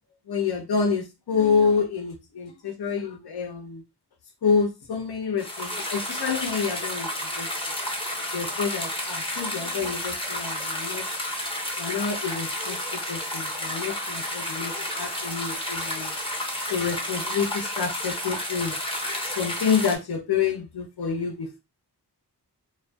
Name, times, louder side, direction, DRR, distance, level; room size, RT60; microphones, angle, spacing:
voice 1, 0.3-3.8 4.4-7.1 7.4-7.5 8.3-11.0 11.8-12.8 13.1-14.7 15.0-16.1 16.7-18.7 19.4-21.6, left 6 dB, 65° left, 0.7 m, -27 dB
sound 1, 5.4-20.0, left 1 dB, 15° left, 0.6 m, -31 dB
2.5 x 2.3 x 2.2 m
wide cardioid pair, 65°, 41 cm